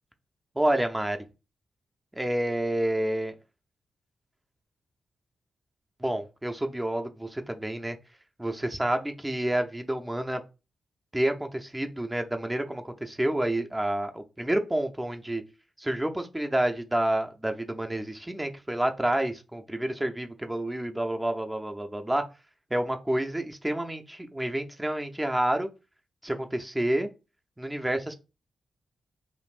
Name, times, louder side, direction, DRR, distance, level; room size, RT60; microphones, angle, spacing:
voice 1, 0.6-1.2 2.1-3.3 6.0-8.0 8.4-10.4 11.1-15.4 15.8-22.2 22.7-25.7 26.2-27.1 27.6-28.1, right 1 dB, 15° right, 5 dB, 0.7 m, -29 dB
5.3 x 2.5 x 2.4 m, 0.30 s
supercardioid pair, 40°, 0 cm